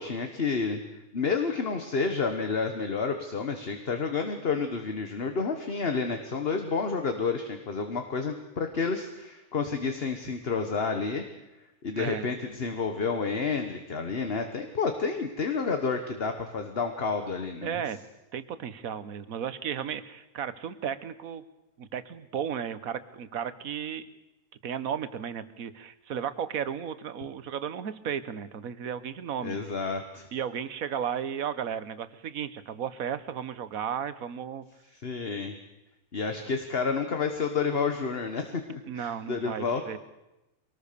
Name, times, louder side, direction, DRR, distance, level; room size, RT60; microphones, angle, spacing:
voice 1, 0.0-11.2 11.8-17.7 29.4-30.3 35.0-35.5 36.1-40.0, left 5 dB, 40° left, 6 dB, 1.5 m, -30 dB
voice 2, 11.9-12.3 17.6-18.0 18.3-21.4 21.8-24.0 24.6-29.6 30.3-34.6 38.9-40.0, right 8 dB, 65° right, 14 dB, 1.5 m, -34 dB
23.5 x 19.0 x 6.8 m, 0.97 s
omnidirectional pair, 1.6 m